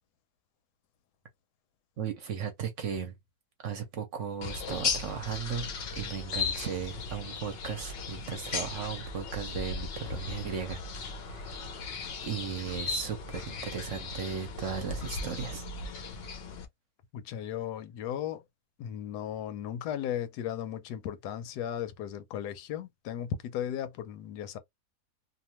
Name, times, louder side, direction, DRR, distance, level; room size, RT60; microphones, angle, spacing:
voice 1, 2.0-3.1 3.6-10.8 11.2-11.7 12.2-15.6, right 7 dB, 60° right, 0.9 m, -36 dB
sound 1, 4.4-16.6, left 4 dB, 65° left, 0.6 m, -37 dB
voice 2, 17.1-18.4 18.8-24.6, left 10 dB, 90° left, 1.2 m, -36 dB
2.8 x 2.3 x 2.9 m
omnidirectional pair, 1.7 m